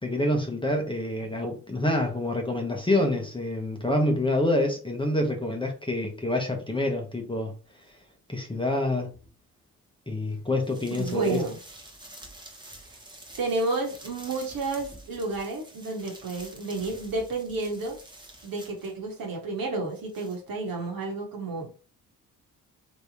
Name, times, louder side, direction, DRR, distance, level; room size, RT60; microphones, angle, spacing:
voice 1, 0.0-7.6 8.3-9.1 10.1-11.4, left 1 dB, 10° left, 0.9 m, -27 dB
sound 1, 7.8-7.9 9.1-9.3 10.3-19.3 19.6-20.4, right 1 dB, 10° right, 1.1 m, -48 dB
voice 2, 10.9-11.6 13.4-18.0 18.4-21.7, right 3 dB, 55° right, 1.5 m, -31 dB
3.4 x 3.1 x 2.8 m
hypercardioid pair, 45°, 42 cm